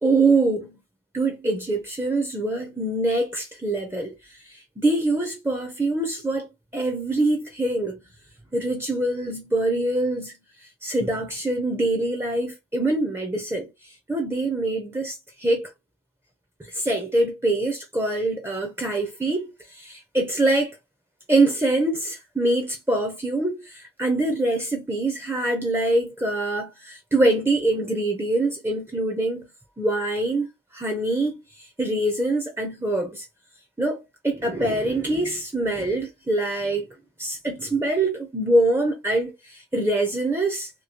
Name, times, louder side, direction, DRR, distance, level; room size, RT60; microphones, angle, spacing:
voice 1, 0.0-0.8 1.1-4.1 4.5-8.0 8.5-10.3 10.8-13.7 14.1-15.7 16.7-20.7 21.3-29.5 29.8-30.5 30.7-31.3 31.8-33.2 33.8-36.9 37.2-40.7, right 2 dB, 15° right, 0.6 m, -24 dB
3.0 x 2.7 x 2.7 m
head